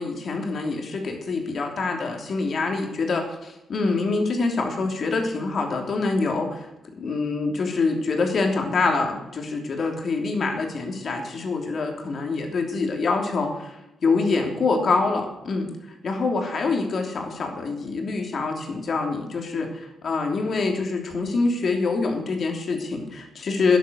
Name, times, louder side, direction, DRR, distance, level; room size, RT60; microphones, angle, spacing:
voice 1, 0.0-6.6 7.0-13.7 14.0-15.7 16.0-19.7 20.0-23.8, left 3 dB, 55° left, 3 dB, 3.0 m, -25 dB
13.5 x 10.0 x 6.9 m, 0.89 s
cardioid pair, 85°, 0 cm